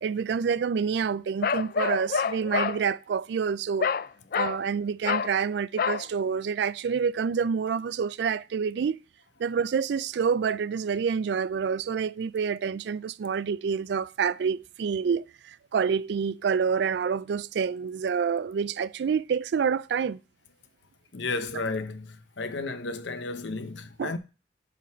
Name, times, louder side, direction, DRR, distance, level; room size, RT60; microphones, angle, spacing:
voice 1, 0.0-3.9 4.3-9.0 9.4-20.2 24.0-24.1, right 6 dB, 65° right, 0.3 m, -27 dB
Bark, 1.4-2.8 3.8-4.1 4.3-4.6 5.0-5.3 5.8-6.1, left 6 dB, 50° left, 0.3 m, -27 dB
voice 2, 21.1-24.2, left 3 dB, 75° left, 0.8 m, -33 dB
7.4 x 3.9 x 5.5 m
head